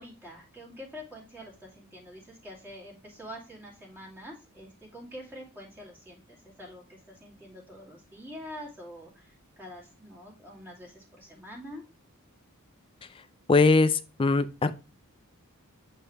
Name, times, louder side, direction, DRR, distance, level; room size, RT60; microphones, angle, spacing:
voice 1, 0.0-11.8, equal, 10° right, 2.4 m, -46 dB
voice 2, 13.5-14.8, left 3 dB, 25° left, 0.4 m, -21 dB
8.0 x 4.6 x 3.1 m
head